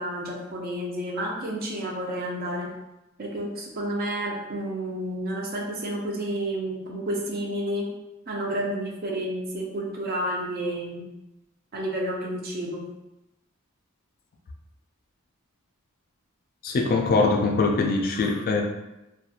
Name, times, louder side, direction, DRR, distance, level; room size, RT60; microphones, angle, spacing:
voice 1, 0.0-2.7 3.2-7.9 8.3-11.0 11.7-12.9, right 1 dB, 45° right, -1 dB, 0.5 m, -30 dB
voice 2, 16.6-18.6, left 3 dB, 45° left, 1 dB, 0.3 m, -22 dB
2.4 x 2.2 x 2.7 m, 0.94 s
head